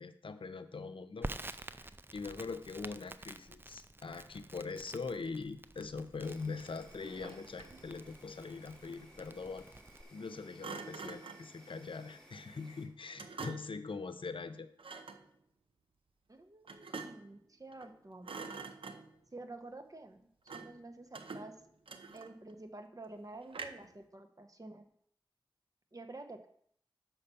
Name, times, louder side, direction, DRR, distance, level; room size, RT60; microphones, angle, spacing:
voice 1, 0.0-9.7 10.1-14.7, left 4 dB, 75° left, 10 dB, 0.6 m, -42 dB
Crackle, 1.2-10.0, right 2 dB, 25° right, 0.4 m, -49 dB
Insect, 6.2-12.8, equal, 5° left, 2.5 m, -59 dB
Thump thud, 7.0-7.9 10.6-11.5 13.2-13.8 14.8-15.3 16.7-17.3 17.7-18.0 18.2-19.2 20.5-20.8 21.1-22.5 23.5-24.0, right 4 dB, 90° right, 0.6 m, -46 dB
voice 2, 16.3-18.6 19.3-21.6 22.1-24.9 25.9-26.5, right 2 dB, 40° right, 6 dB, 1.1 m, -50 dB
5.8 x 5.6 x 6.9 m, 0.65 s
wide cardioid pair, 50°, 9 cm